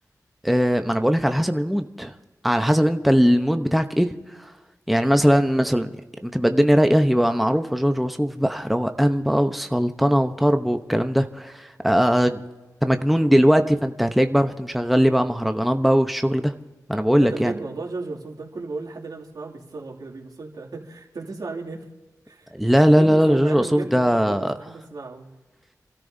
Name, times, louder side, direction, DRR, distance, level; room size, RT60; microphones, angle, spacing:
voice 1, 0.4-2.1 2.4-4.1 4.4-4.5 4.9-5.9 6.2-12.4 12.8-16.5 16.9-17.5 22.5-24.5, equal, ahead, 7 dB, 0.8 m, -20 dB
voice 2, 17.2-21.9 22.3-25.3, right 3 dB, 80° right, -2 dB, 2.6 m, -35 dB
28.5 x 13.5 x 2.7 m, 1.2 s
wide cardioid pair, 60°, 7 cm